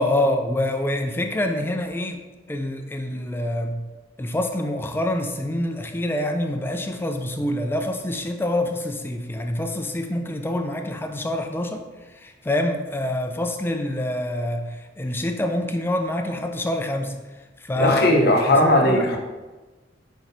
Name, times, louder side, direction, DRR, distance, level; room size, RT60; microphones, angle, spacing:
voice 1, 0.0-3.8 4.2-11.8 12.1-17.1 17.6-19.1, left 1 dB, 10° left, 5 dB, 0.3 m, -26 dB
voice 2, 17.8-19.2, left 1 dB, 55° left, 1 dB, 0.7 m, -18 dB
4.5 x 4.1 x 2.6 m, 1.2 s
head